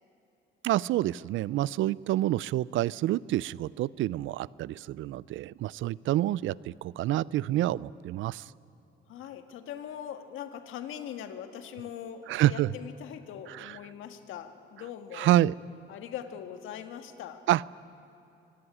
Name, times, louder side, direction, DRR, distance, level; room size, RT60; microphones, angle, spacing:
voice 1, 0.6-8.4 12.3-12.7 13.6-13.7 15.1-15.5 17.5-17.8, right 14 dB, 80° right, 22 dB, 0.5 m, -28 dB
voice 2, 9.1-15.3 15.9-17.4, left 9 dB, 85° left, 8 dB, 1.7 m, -41 dB
25.0 x 18.0 x 9.9 m, 2.9 s
cardioid pair, 90°, 20 cm